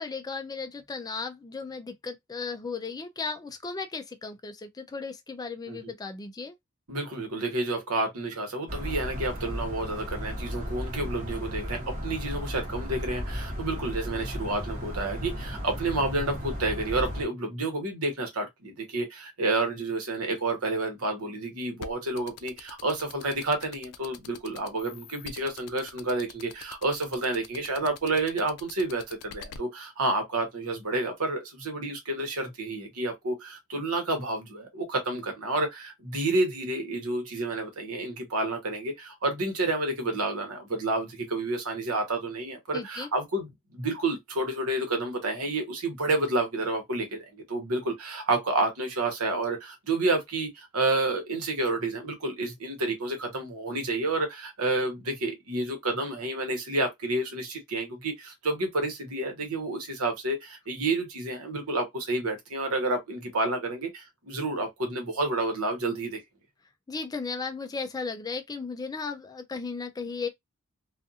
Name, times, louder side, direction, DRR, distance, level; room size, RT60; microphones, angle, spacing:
voice 1, 0.0-6.5 42.7-43.1 66.9-70.3, left 4 dB, 15° left, 0.3 m, -35 dB
voice 2, 6.9-66.2, right 2 dB, 75° right, 1.1 m, -30 dB
sound 1, 8.7-17.3, equal, 35° right, 1.1 m, -35 dB
sound 2, 21.8-29.6, left 8 dB, 85° left, 0.4 m, -44 dB
2.4 x 2.4 x 2.7 m
head